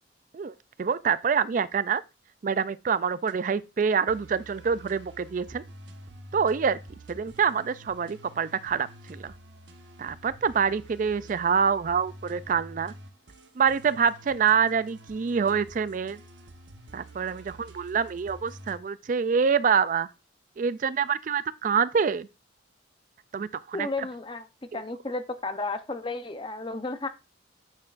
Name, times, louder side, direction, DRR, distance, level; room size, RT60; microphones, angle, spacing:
voice 1, 0.3-2.0 2.4-5.6 6.3-6.8 7.1-9.3 10.0-12.9 13.6-16.2 16.9-20.1 20.6-22.3 23.3-23.9 24.7-24.8, right 6 dB, 40° right, 0.3 m, -26 dB
sound 1, 2.9-3.3 4.1-18.8, right 1 dB, 70° right, 1.0 m, -48 dB
voice 2, 23.7-24.5 24.7-27.1, left 3 dB, 25° left, 0.8 m, -33 dB
9.4 x 6.7 x 2.5 m
head